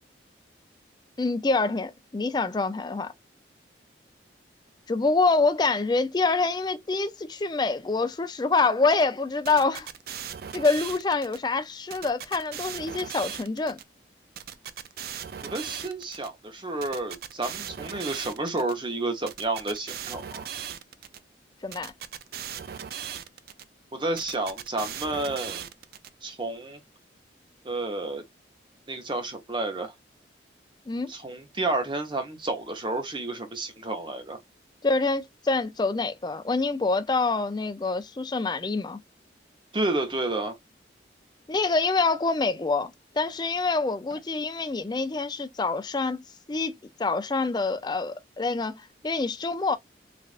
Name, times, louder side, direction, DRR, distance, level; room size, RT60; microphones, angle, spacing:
voice 1, 1.2-3.1 4.9-9.9 10.5-13.8 21.6-21.9 30.9-31.1 34.8-39.0 41.5-46.2 46.5-46.7 47.0-49.8, left 3 dB, 20° left, 0.3 m, -26 dB
sound 1, 9.4-11.4 11.9-13.8 14.4-16.3 16.8-18.7 19.3-21.2 21.7-23.6 24.2-26.1, right 9 dB, 55° right, 0.3 m, -38 dB
voice 2, 15.4-20.5 23.9-25.7 26.2-26.8 27.6-28.2 28.9-29.9 31.1-34.4 39.7-40.6, right 2 dB, 25° right, 0.7 m, -30 dB
3.3 x 2.4 x 2.3 m
head